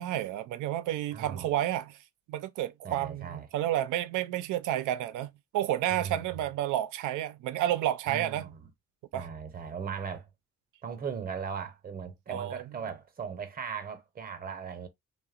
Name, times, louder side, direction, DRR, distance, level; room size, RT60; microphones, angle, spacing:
voice 1, 0.0-2.0 2.3-8.4 9.1-9.3 12.3-12.6, right 12 dB, 80° right, 0.4 m, -30 dB
voice 2, 1.1-1.5 2.8-3.5 5.9-6.4 8.1-8.7 9.1-10.3 10.8-14.9, right 6 dB, 30° right, 0.7 m, -38 dB
2.8 x 2.1 x 2.3 m
cardioid pair, 90°, 30 cm